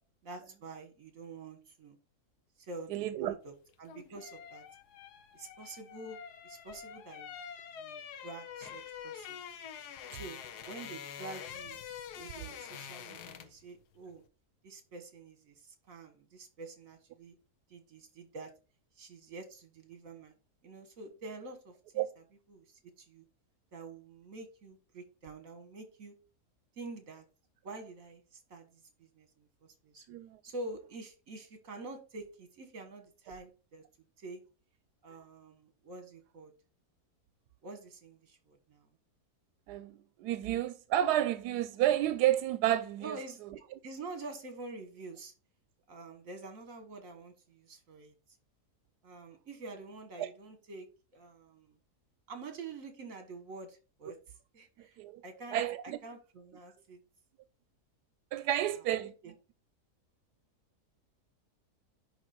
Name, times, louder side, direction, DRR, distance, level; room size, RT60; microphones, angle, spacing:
voice 1, 0.2-2.0 2.6-3.5 3.8-4.6 5.3-7.4 7.8-9.4 10.1-11.8 12.1-14.2 14.6-17.3 17.7-18.5 18.9-20.3 20.6-22.1 22.5-23.2 23.7-26.1 26.7-27.2 27.6-30.0 30.4-33.8 34.2-34.4 35.0-36.5 37.6-38.9 43.0-43.4 43.8-45.3 45.9-48.1 49.0-50.9 51.1-51.8 52.3-54.2 54.5-55.0 55.2-55.6 56.0-57.0 59.2-59.3, right 3 dB, 60° right, 1.9 m, -47 dB
voice 2, 2.9-3.3 12.4-12.6 22.0-22.1 30.1-30.4 39.7-43.2 50.2-50.3 55.0-55.2 55.5-56.0 58.3-59.1, right 12 dB, 90° right, 1.1 m, -31 dB
sound 1, 3.6-13.6 13.9-14.1, left 8 dB, 90° left, 1.3 m, -46 dB
10.5 x 3.5 x 4.2 m
omnidirectional pair, 1.7 m